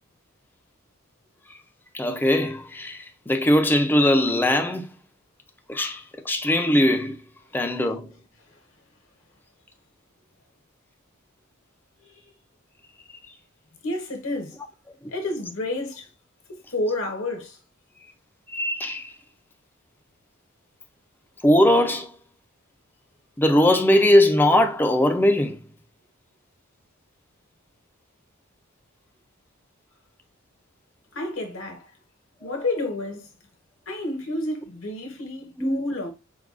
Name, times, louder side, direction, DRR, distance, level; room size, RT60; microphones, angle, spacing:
voice 1, 1.9-4.9 5.7-6.0 6.3-7.2 7.5-8.1 18.5-19.1 21.4-22.1 23.4-25.6 35.6-35.8, left 1 dB, 10° left, 0.4 m, -20 dB
voice 2, 13.8-14.6 15.1-16.1 16.7-17.6 31.1-31.9 32.4-33.3 33.9-36.1, left 2 dB, 70° left, 1.0 m, -30 dB
4.7 x 2.3 x 2.5 m
head